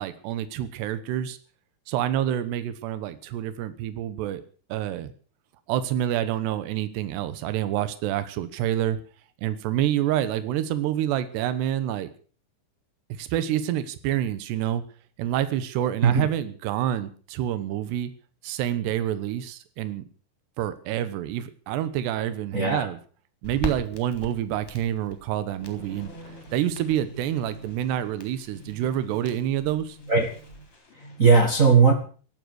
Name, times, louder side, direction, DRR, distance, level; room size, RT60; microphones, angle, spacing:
voice 1, 0.0-1.4 1.9-4.4 4.7-5.1 5.7-9.0 9.4-12.1 13.2-14.8 15.2-18.1 18.4-20.0 20.6-23.0 23.4-26.1 26.5-30.0, right 11 dB, 85° right, 13 dB, 3.3 m, -27 dB
voice 2, 16.0-16.3 22.5-22.9 30.1-30.3 30.9-31.9, right 5 dB, 65° right, 4 dB, 0.8 m, -18 dB
Crackle, 23.4-30.7, equal, 5° left, 2.6 m, -41 dB
sound 1, 25.6-31.3, right 1 dB, 35° left, 5.0 m, -45 dB
16.0 x 12.5 x 6.5 m, 0.42 s
omnidirectional pair, 4.7 m